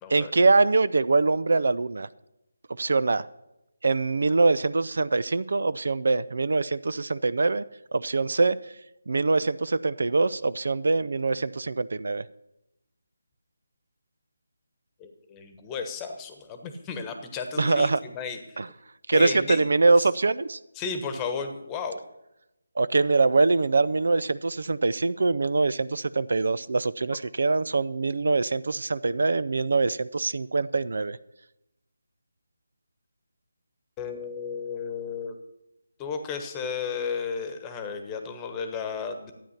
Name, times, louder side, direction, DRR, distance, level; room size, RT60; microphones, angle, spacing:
voice 1, 0.1-2.1 2.8-3.2 3.8-7.6 7.9-8.6 9.1-12.2 17.6-18.0 18.6-18.7 19.1-20.6 22.8-31.2, right 3 dB, 65° right, 16 dB, 0.4 m, -23 dB
voice 2, 15.0-18.4 19.1-19.6 20.8-22.0 34.0-35.3 36.0-39.3, left 5 dB, 15° left, 7 dB, 1.2 m, -33 dB
12.5 x 9.1 x 5.8 m, 0.90 s
figure-of-eight pair, 165°, 0 cm